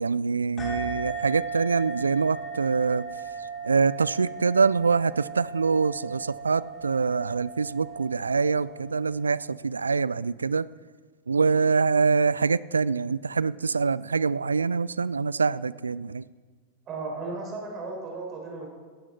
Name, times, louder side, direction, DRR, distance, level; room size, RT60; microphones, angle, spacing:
voice 1, 0.0-3.0 3.6-10.7 11.3-16.2, right 5 dB, 75° right, 20 dB, 0.3 m, -25 dB
sound 1, 0.6-9.6, right 4 dB, 25° left, 3.5 m, -37 dB
voice 2, 16.9-18.7, right 3 dB, 30° right, -1 dB, 5.3 m, -35 dB
17.5 x 12.5 x 4.5 m, 1.5 s
figure-of-eight pair, 90°, 0 cm